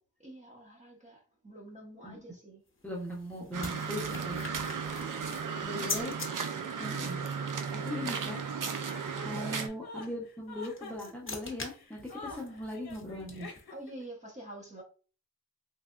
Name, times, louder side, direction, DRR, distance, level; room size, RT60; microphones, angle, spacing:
voice 1, 0.2-2.6 4.9-5.6 9.5-9.6 12.3-12.5 13.7-14.8, right 1 dB, 20° right, -2 dB, 1.1 m, -48 dB
sound 1, 2.7-6.3 10.4-13.8, left 3 dB, 35° left, 0.9 m, -43 dB
voice 2, 2.8-4.5 5.6-6.1 6.4-7.2 7.7-8.4 9.2-13.5, left 1 dB, 5° left, -3 dB, 1.0 m, -39 dB
sound 2, 3.5-9.7, right 6 dB, 60° right, 0.6 m, -35 dB
Chuckle chortle, 8.8-14.0, left 3 dB, 75° left, 0.8 m, -47 dB
3.4 x 3.3 x 2.5 m, 0.37 s
wide cardioid pair, 125°, 37 cm